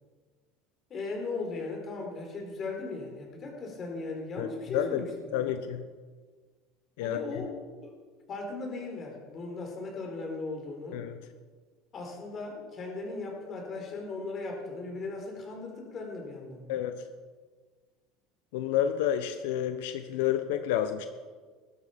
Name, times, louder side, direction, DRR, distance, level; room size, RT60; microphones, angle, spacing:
voice 1, 0.9-5.6 7.0-7.5 7.8-8.0 8.3-11.0 11.9-16.8, left 3 dB, 30° left, 1 dB, 4.6 m, -37 dB
voice 2, 5.3-5.8 7.0-7.2 10.9-11.2 16.7-17.0 18.5-21.1, left 10 dB, 85° left, 8 dB, 1.1 m, -29 dB
20.0 x 12.5 x 5.3 m, 1.5 s
cardioid pair, 155°, 0 cm